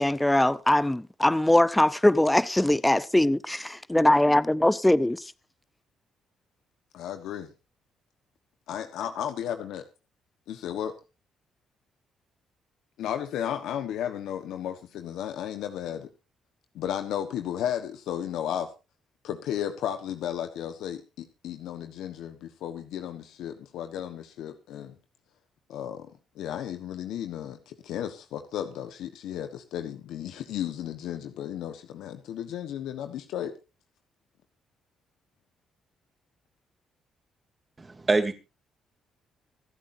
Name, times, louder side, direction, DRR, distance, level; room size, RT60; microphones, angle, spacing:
voice 1, 0.0-5.3, left 1 dB, 10° left, 0.7 m, -22 dB
voice 2, 6.9-7.5 8.7-9.8 10.5-11.0 13.0-16.1 16.7-18.7 19.2-24.9 25.7-33.5, left 10 dB, 85° left, 1.2 m, -34 dB
voice 3, 37.8-38.3, right 3 dB, 25° right, 2.9 m, -25 dB
26.0 x 8.8 x 2.7 m
cardioid pair, 90°, 0 cm